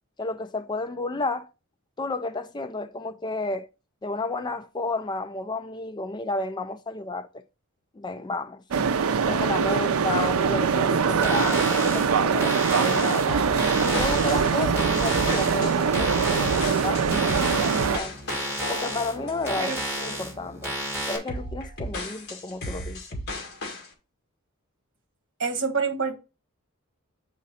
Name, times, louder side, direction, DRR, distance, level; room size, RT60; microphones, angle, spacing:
voice 1, 0.2-1.5 2.0-3.7 4.0-7.4 7.9-8.6 9.3-13.3 13.8-18.1 18.7-20.8 21.1-23.0, left 2 dB, 20° left, 0.3 m, -32 dB
sound 1, 8.7-18.0, right 6 dB, 75° right, 0.5 m, -23 dB
sound 2, 11.1-21.2, equal, 10° right, 3.5 m, -33 dB
sound 3, 13.3-20.2 20.6-20.9 21.3-23.9, left 1 dB, 50° left, 2.0 m, -35 dB
voice 2, 25.4-26.2, right 5 dB, 60° right, 1.3 m, -27 dB
7.4 x 5.0 x 4.2 m
head